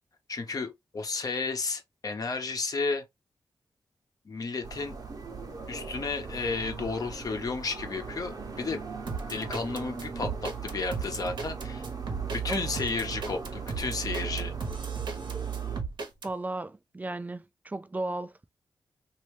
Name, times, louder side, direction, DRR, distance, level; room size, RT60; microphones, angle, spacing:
voice 1, 0.3-3.0 4.2-5.0 5.7-8.8 9.3-14.5, left 4 dB, 55° left, 1.0 m, -33 dB
sound 1, 4.6-15.8, right 6 dB, 55° right, 1.1 m, -37 dB
sound 2, 9.1-16.3, right 4 dB, 80° right, 1.1 m, -36 dB
voice 2, 16.2-18.3, right 2 dB, 20° right, 0.4 m, -35 dB
3.1 x 2.8 x 3.2 m
cardioid pair, 70°, 8 cm